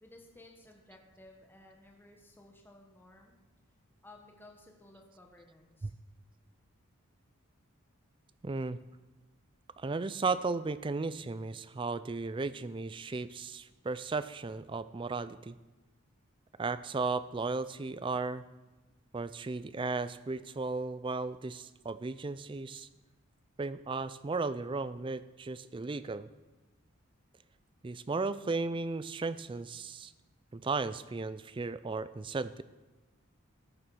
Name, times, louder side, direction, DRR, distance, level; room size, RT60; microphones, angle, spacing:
voice 1, 0.0-3.4 4.0-5.9, left 1 dB, 10° left, 1 dB, 1.1 m, -56 dB
voice 2, 8.4-8.8 9.8-15.5 16.6-18.4 19.1-22.9 23.6-26.3 27.8-30.1 30.5-32.6, right 3 dB, 25° right, 15 dB, 0.4 m, -35 dB
14.0 x 7.2 x 6.2 m, 1.2 s
head